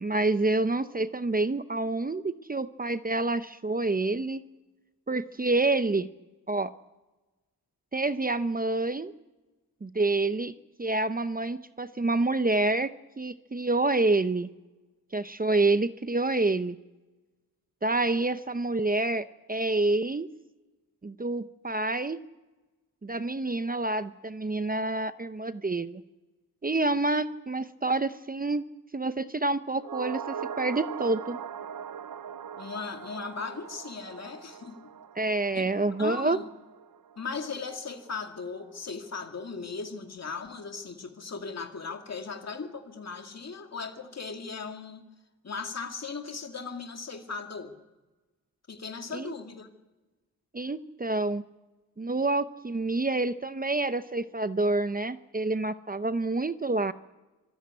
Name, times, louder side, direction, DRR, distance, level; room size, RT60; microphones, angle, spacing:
voice 1, 0.0-4.4 5.1-6.1 6.5-6.7 7.9-9.1 9.8-10.5 10.8-12.9 13.2-14.5 15.1-16.8 17.8-20.3 21.0-22.2 23.0-26.0 26.6-28.6 28.9-31.4 35.2-36.4 49.1-49.3 50.5-51.4 52.0-56.9, right 2 dB, 25° right, 12 dB, 0.7 m, -27 dB
sound 1, 29.8-38.3 38.6-38.7, right 8 dB, 70° right, 0.7 m, -41 dB
voice 2, 32.6-34.9 35.5-35.6 36.0-36.4 37.2-45.0 45.4-47.7 48.7-49.7, left 4 dB, 45° left, 5 dB, 2.3 m, -38 dB
25.5 x 16.0 x 9.6 m, 1.1 s
wide cardioid pair, 140°, 35 cm